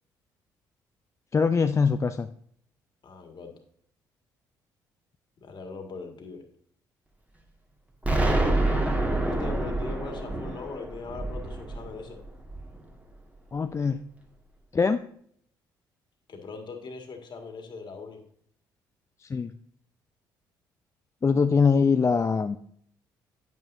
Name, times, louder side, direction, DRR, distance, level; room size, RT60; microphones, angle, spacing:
voice 1, 1.3-2.3 13.5-14.0 14.7-15.0 19.2-19.5 21.2-22.6, left 5 dB, 30° left, 9 dB, 0.4 m, -23 dB
voice 2, 3.0-3.5 5.4-6.4 9.2-12.2 16.3-18.2, left 4 dB, 50° left, 4 dB, 1.9 m, -40 dB
Explosion, 8.0-12.9, right 2 dB, 15° right, 1.9 m, -27 dB
9.0 x 8.8 x 2.7 m, 0.64 s
hypercardioid pair, 50°, 10 cm